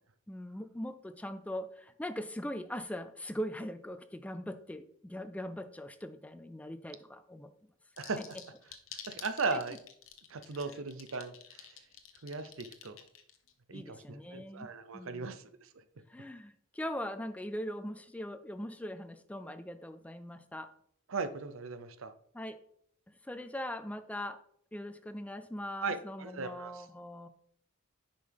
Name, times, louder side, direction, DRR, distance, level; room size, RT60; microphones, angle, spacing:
voice 1, 0.3-7.5 9.5-9.6 13.7-15.4 16.1-20.7 22.3-22.6 23.1-24.4 24.7-27.3, equal, 5° left, 10 dB, 0.4 m, -41 dB
sound 1, 8.0-13.5, left 9 dB, 65° left, 0.9 m, -49 dB
voice 2, 8.0-8.4 9.0-9.8 10.3-11.8 12.2-13.0 13.7-15.8 21.1-22.1 25.8-26.9, right 4 dB, 70° right, 11 dB, 0.7 m, -38 dB
10.5 x 5.2 x 3.5 m, 0.66 s
head